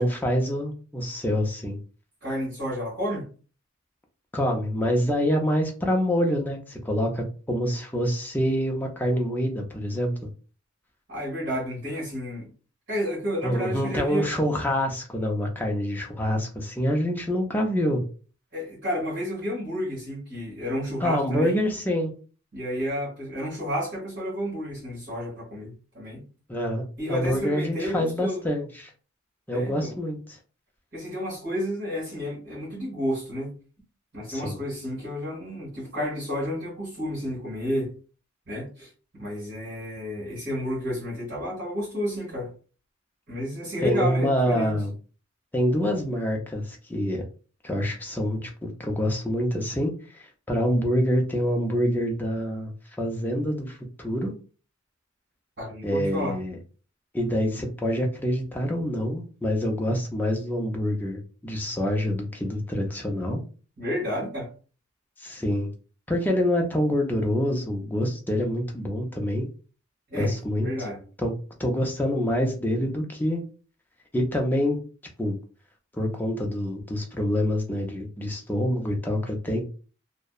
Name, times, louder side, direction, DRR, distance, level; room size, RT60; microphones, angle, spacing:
voice 1, 0.0-1.8 4.3-10.1 13.4-18.0 21.0-22.1 26.5-28.9 29.5-30.4 34.3-34.6 43.8-44.9 45.5-47.2 47.6-52.7 53.0-54.3 55.8-56.6 57.1-63.4 65.2-65.7 66.1-69.5 70.2-70.7 71.2-71.3 71.6-73.4 74.1-74.8 75.2-75.4 76.0-79.6, equal, 10° left, 1 dB, 0.4 m, -26 dB
voice 2, 2.2-3.3 11.1-12.5 12.9-14.3 18.5-21.6 22.5-26.2 27.0-28.4 29.5-29.9 30.9-33.5 34.1-37.9 38.5-42.5 43.3-44.7 55.6-56.4 63.8-64.5 70.1-71.0, equal, 55° right, -8 dB, 1.4 m, -31 dB
2.7 x 2.1 x 2.3 m, 0.37 s
head